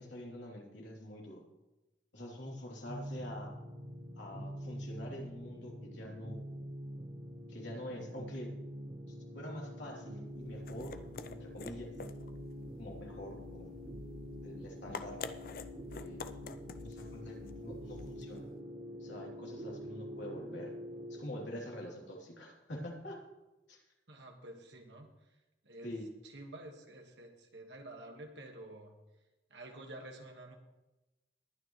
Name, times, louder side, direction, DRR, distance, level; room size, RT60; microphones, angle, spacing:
voice 1, 0.0-1.4 2.1-3.6 4.2-6.5 7.5-8.5 9.1-11.0 11.3-11.9 12.8-13.7 14.4-15.2 15.9-16.2 16.8-18.5 19.0-20.7 21.1-23.2 23.7-23.8 25.8-26.0, left 1 dB, 85° left, -2 dB, 3.2 m, -45 dB
sound 1, 2.9-21.2, equal, 60° right, 1.5 m, -46 dB
sound 2, 10.3-18.5, left 4 dB, 50° left, 0.5 m, -48 dB
voice 2, 24.1-25.1 25.6-25.9 26.3-28.9 29.5-30.6, right 1 dB, 80° right, 2 dB, 1.7 m, -49 dB
20.5 x 9.3 x 3.2 m, 1.1 s
head